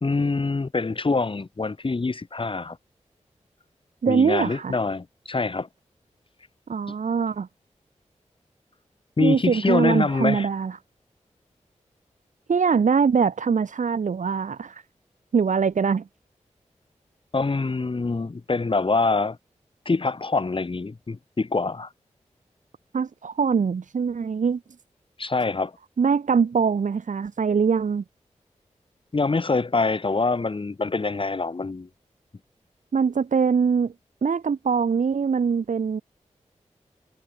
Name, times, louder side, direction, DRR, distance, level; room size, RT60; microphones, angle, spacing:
voice 1, 0.0-2.8 4.1-5.7 9.2-10.5 17.3-19.4 19.8-21.9 25.2-25.7 29.1-31.9, left 3 dB, 45° left, 1.3 m, -25 dB
voice 2, 4.0-4.8 6.7-7.5 9.2-10.8 12.5-14.8 15.3-16.0 22.9-24.6 26.0-28.0 32.9-33.9 34.2-36.0, right 6 dB, 80° right, 1.8 m, -22 dB
cardioid pair, 50°, 13 cm